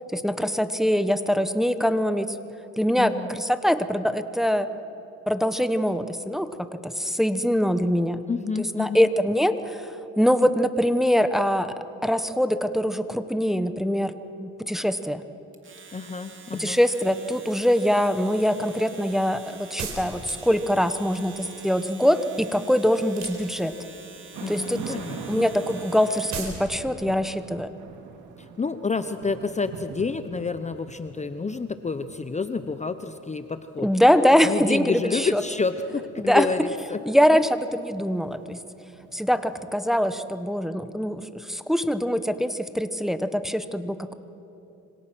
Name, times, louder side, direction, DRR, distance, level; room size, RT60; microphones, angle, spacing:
voice 1, 0.1-2.4 2.8-4.7 5.3-8.2 8.6-11.7 12.0-15.2 16.6-23.7 24.5-24.9 25.3-27.7 33.8-35.4 36.2-36.5 37.1-38.6 39.1-44.1, equal, ahead, 10 dB, 1.1 m, -23 dB
voice 2, 3.0-3.3 8.3-9.1 15.9-16.8 24.4-25.5 28.4-33.9 34.4-37.0, left 4 dB, 25° left, 10 dB, 0.8 m, -29 dB
Domestic sounds home sounds, 15.5-26.6, right 4 dB, 40° right, 2.8 m, -46 dB
sound 1, 19.8-20.7 23.1-23.9 26.3-26.6, right 5 dB, 65° right, 4.7 m, -35 dB
Thunder / Rain, 24.3-40.4, right 6 dB, 80° right, 2.3 m, -44 dB
27.0 x 25.5 x 6.2 m, 2.8 s
cardioid pair, 90°, 30 cm